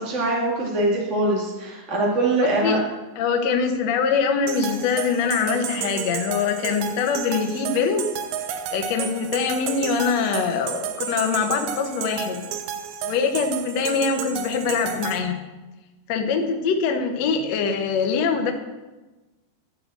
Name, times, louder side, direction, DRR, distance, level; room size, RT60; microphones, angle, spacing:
voice 1, 0.0-2.8, right 2 dB, 35° right, -3 dB, 1.1 m, -23 dB
voice 2, 2.4-2.8 3.2-8.1 8.7-12.4 13.0-15.4 16.1-18.5, left 5 dB, 85° left, 4 dB, 1.4 m, -23 dB
sound 1, 4.5-15.2, right 8 dB, 85° right, 1.9 m, -32 dB
12.5 x 5.1 x 7.8 m, 1.1 s
omnidirectional pair, 4.8 m